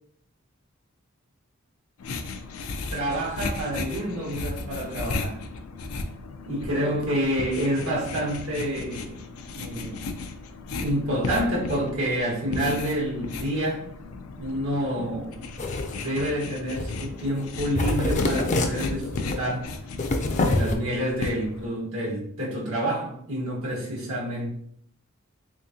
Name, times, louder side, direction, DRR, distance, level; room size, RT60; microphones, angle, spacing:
sound 1, 2.0-21.7, left 3 dB, 90° left, 0.5 m, -35 dB
voice 1, 2.9-5.4 6.5-9.2 9.5-10.0 10.8-13.9 14.4-15.4 16.0-19.7 20.3-24.5, right 1 dB, 85° right, 1.5 m, -28 dB
sound 2, 15.6-16.0 16.7-17.1 17.4-17.5 17.7-19.4 20.0-20.7, left 2 dB, 35° left, 0.4 m, -26 dB
3.6 x 3.6 x 2.8 m
head